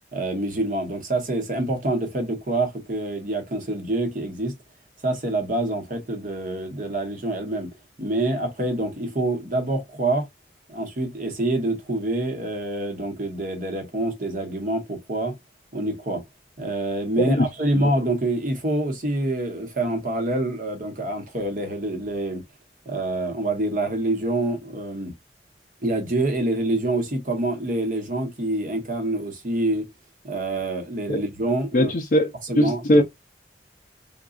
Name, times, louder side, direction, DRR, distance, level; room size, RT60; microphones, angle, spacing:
voice 1, 0.1-4.5 5.0-7.7 8.0-10.3 10.7-15.3 15.7-16.2 16.6-22.4 22.9-25.1 25.8-29.9 30.2-31.9 32.5-33.0, right 2 dB, 45° right, 0.9 m, -26 dB
voice 2, 31.7-32.3 32.6-33.0, left 1 dB, 45° left, 0.4 m, -20 dB
3.7 x 2.3 x 2.3 m
head